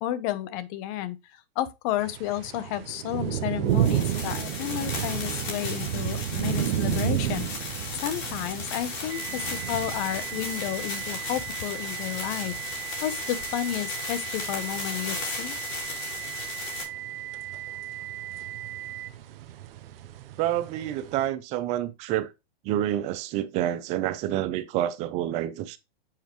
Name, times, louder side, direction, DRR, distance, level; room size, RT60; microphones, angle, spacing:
voice 1, 0.0-1.2 1.6-7.5 8.0-12.5 13.0-15.6, left 12 dB, 40° left, 0.8 m, -31 dB
sound 1, 2.0-21.3, right 12 dB, 65° right, 0.6 m, -33 dB
sound 2, 3.7-16.8, left 3 dB, 55° left, 4.1 m, -36 dB
sound 3, 9.1-19.1, right 14 dB, 80° right, 1.0 m, -38 dB
voice 2, 20.4-22.3 22.6-25.8, right 12 dB, 25° right, 0.4 m, -28 dB
7.5 x 4.5 x 3.0 m
hypercardioid pair, 135°, 31 cm